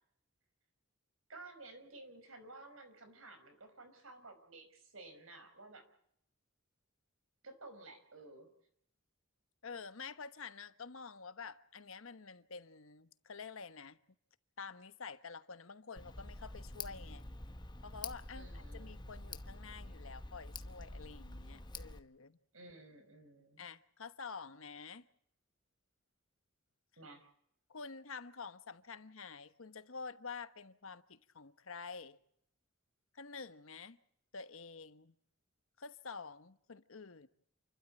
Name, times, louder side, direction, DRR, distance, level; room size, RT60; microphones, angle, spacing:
voice 1, 1.3-5.8 7.4-8.5 18.3-19.0 22.5-23.6 27.0-27.3, right 2 dB, 80° right, 5.2 m, -54 dB
voice 2, 9.6-14.0 14.6-17.3 17.8-22.4 23.6-25.0 27.7-32.2 33.1-34.0 34.3-35.1 35.8-37.3, left 5 dB, 80° left, 1.1 m, -49 dB
Tick, 16.0-22.0, left 2 dB, 20° left, 1.0 m, -47 dB
29.0 x 12.5 x 8.8 m
head